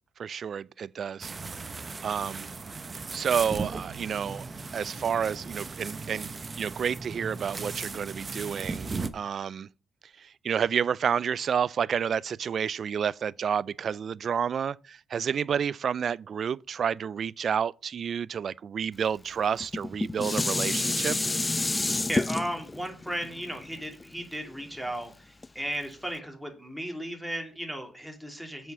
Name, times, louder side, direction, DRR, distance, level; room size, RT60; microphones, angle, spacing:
voice 1, 0.2-1.3 2.0-2.5 3.1-4.5 4.7-9.7 10.2-21.2, right 7 dB, 55° right, 0.4 m, -30 dB
sound 1, 1.2-9.1, right 4 dB, 30° right, 1.0 m, -37 dB
Dishes pots and pans, 19.6-24.9 25.4-25.5, left 2 dB, 20° left, 0.3 m, -29 dB
voice 2, 22.1-28.7, equal, ahead, 2.7 m, -35 dB
7.8 x 5.7 x 6.8 m
cardioid pair, 90°, 0 cm